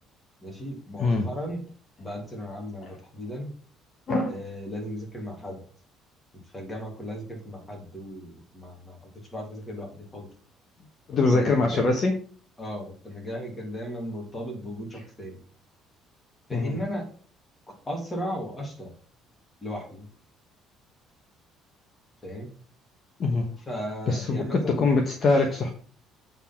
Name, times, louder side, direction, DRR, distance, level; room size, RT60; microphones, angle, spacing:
voice 1, 0.4-1.6 2.0-3.5 4.3-5.6 6.5-10.3 11.3-11.9 12.6-15.4 16.5-17.1 17.7-18.9 19.6-20.1 22.2-22.5 23.7-24.9, equal, 15° left, 1 dB, 2.4 m, -36 dB
voice 2, 11.1-12.1 14.9-15.0 16.5-16.8 23.2-23.5 24.1-25.7, left 3 dB, 35° left, 3 dB, 1.1 m, -23 dB
8.2 x 3.9 x 5.8 m, 0.43 s
cardioid pair, 160°, 0 cm